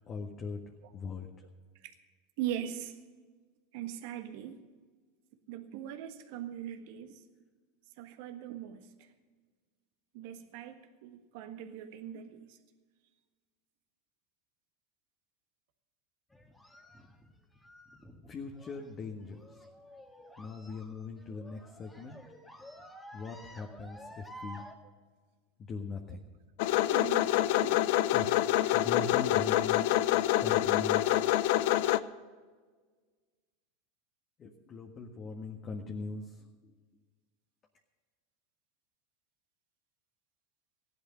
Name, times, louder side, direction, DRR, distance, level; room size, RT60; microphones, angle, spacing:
voice 1, 0.1-0.6 0.9-1.3 18.3-19.6 20.4-22.2 23.1-24.7 25.7-26.2 28.1-28.3 28.7-30.0 30.4-31.2 34.4-36.4, left 4 dB, 35° left, 1 dB, 1.6 m, -40 dB
voice 2, 2.4-3.0 3.7-4.6 5.5-7.2 8.0-9.1 10.1-12.6 26.9-27.8 28.6-28.8, right 11 dB, 65° right, 7 dB, 1.6 m, -41 dB
sound 1, 16.3-24.7, equal, 10° left, 2.0 m, -52 dB
sound 2, 26.6-32.0, left 14 dB, 65° left, 0.5 m, -26 dB
16.0 x 11.5 x 5.7 m, 1.5 s
hypercardioid pair, 95°, 0 cm